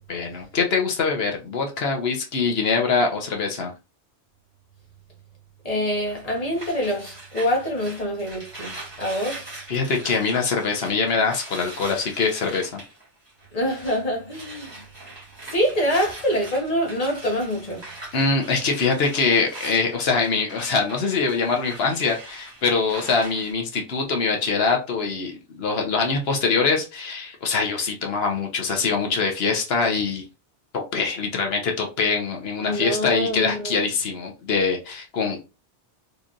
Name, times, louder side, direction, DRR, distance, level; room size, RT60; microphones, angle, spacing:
voice 1, 0.1-3.7 9.7-12.8 18.1-30.2 30.7-35.4, left 4 dB, 65° left, 1.1 m, -23 dB
voice 2, 5.6-9.5 13.5-14.8 15.5-17.8 32.6-33.8, equal, 35° left, 1.2 m, -25 dB
sound 1, 6.1-14.0 14.3-23.5, right 2 dB, 25° right, 1.5 m, -42 dB
4.0 x 3.2 x 2.4 m
omnidirectional pair, 1.1 m